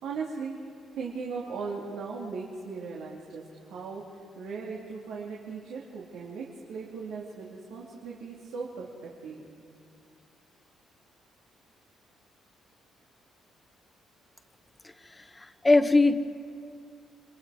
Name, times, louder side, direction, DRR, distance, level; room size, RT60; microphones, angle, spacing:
voice 1, 0.0-0.6 1.0-9.5, right 5 dB, 85° right, -4 dB, 2.9 m, -38 dB
voice 2, 14.8-16.2, left 2 dB, 20° left, 9 dB, 1.3 m, -23 dB
29.5 x 24.5 x 5.0 m, 2.4 s
cardioid pair, 90°, 0 cm